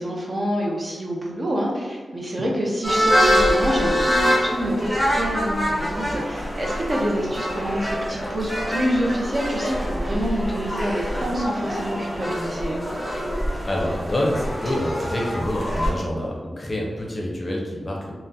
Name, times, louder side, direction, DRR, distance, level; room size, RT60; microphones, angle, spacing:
voice 1, 0.0-12.8, equal, 30° right, -2 dB, 0.5 m, -27 dB
sound 1, 2.8-15.9, equal, 10° right, 0.9 m, -25 dB
voice 2, 13.6-18.2, left 1 dB, 30° left, -2 dB, 0.6 m, -27 dB
3.7 x 2.0 x 2.7 m, 1.5 s
wide cardioid pair, 135°, 0 cm